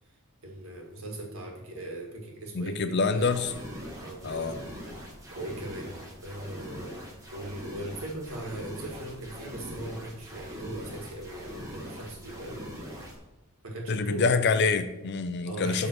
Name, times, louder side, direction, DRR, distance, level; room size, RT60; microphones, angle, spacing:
voice 1, 0.4-3.4 4.0-4.5 5.3-6.9 7.3-12.7 13.6-14.4 15.4-15.9, right 1 dB, 75° right, 0 dB, 1.8 m, -39 dB
voice 2, 2.5-3.5 4.2-4.6 13.9-15.9, left 4 dB, 50° left, 11 dB, 0.5 m, -26 dB
sound 1, 3.2-13.2, equal, 15° right, 1.5 m, -42 dB
7.7 x 3.7 x 6.1 m, 0.99 s
head